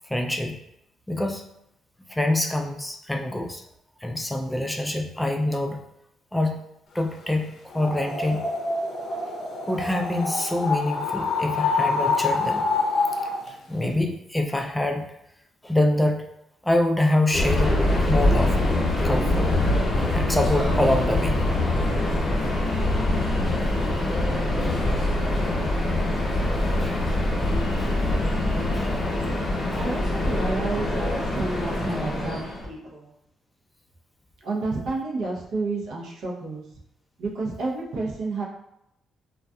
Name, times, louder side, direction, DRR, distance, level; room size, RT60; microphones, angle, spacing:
voice 1, 0.1-0.6 1.1-1.4 2.1-3.6 4.0-5.8 6.3-6.7 6.9-8.5 9.6-12.6 13.5-15.1 15.6-16.2 16.6-19.5 20.0-21.4 22.6-22.7 23.6-23.7 24.6-24.8 26.8-27.1 27.8-27.9 28.7-28.9 29.7-29.9, left 1 dB, 10° left, 3 dB, 0.3 m, -26 dB
sound 1, 7.7-13.5, left 4 dB, 75° left, 0.5 m, -26 dB
Subway metro underground, 17.3-32.7, left 1 dB, 25° left, 0.7 m, -24 dB
voice 2, 29.8-33.1 34.4-36.6 37.2-38.4, right 3 dB, 75° right, -2 dB, 0.6 m, -30 dB
2.6 x 2.3 x 2.3 m, 0.79 s
cardioid pair, 90°, 0 cm